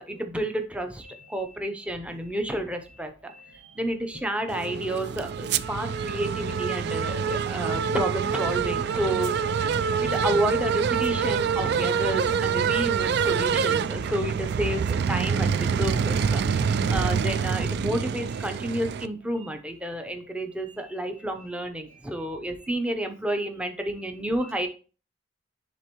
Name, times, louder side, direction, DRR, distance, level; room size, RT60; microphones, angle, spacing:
voice 1, 0.0-3.3 3.7-9.3 9.7-16.4 16.7-24.7, right 1 dB, 5° right, 5 dB, 0.6 m, -30 dB
voice 2, 1.0-1.6 2.1-2.3 2.8-3.0 3.3-3.8 4.1-4.2 5.9-6.1 7.4-7.5 7.8-7.9 8.8-8.9 9.2-10.0 13.8-14.1 14.8-15.1 15.6-16.9 18.3-18.4 19.4-19.5 20.6-21.5 21.8-22.7 23.9-24.0 24.4-24.5, equal, 85° right, 0 dB, 0.9 m, -53 dB
sound 1, 4.5-19.1, right 6 dB, 60° right, 0.3 m, -26 dB
10.0 x 3.5 x 3.0 m, 0.36 s
head